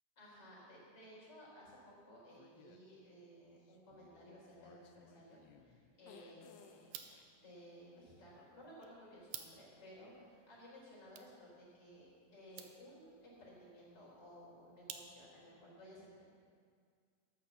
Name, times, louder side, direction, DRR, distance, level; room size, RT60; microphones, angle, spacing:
voice 1, 0.2-6.9 7.4-16.2, equal, 30° left, -6 dB, 4.9 m, -57 dB
sound 1, 2.4-2.8 3.7-7.3, left 7 dB, 80° left, 2.5 m, -62 dB
sound 2, 6.8-15.5, right 10 dB, 75° right, 2.3 m, -56 dB
13.0 x 8.9 x 7.1 m, 2.1 s
omnidirectional pair, 5.3 m